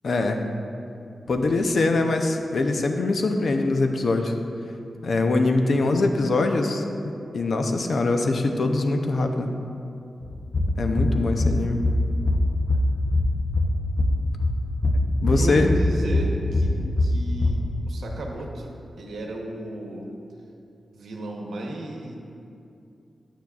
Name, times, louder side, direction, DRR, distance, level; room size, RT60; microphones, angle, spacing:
voice 1, 0.0-0.4 1.3-4.3 5.0-6.8 7.3-9.5 10.8-11.8 15.2-15.7, left 2 dB, 55° left, 5 dB, 0.6 m, -23 dB
sound 1, 10.2-17.5, left 1 dB, 25° left, 0.7 m, -23 dB
voice 2, 15.3-17.6 17.9-18.7 19.0-20.1 20.9-22.2, right 1 dB, 85° right, 0 dB, 0.9 m, -33 dB
9.2 x 8.9 x 2.4 m, 2.6 s
wide cardioid pair, 115°, 0 cm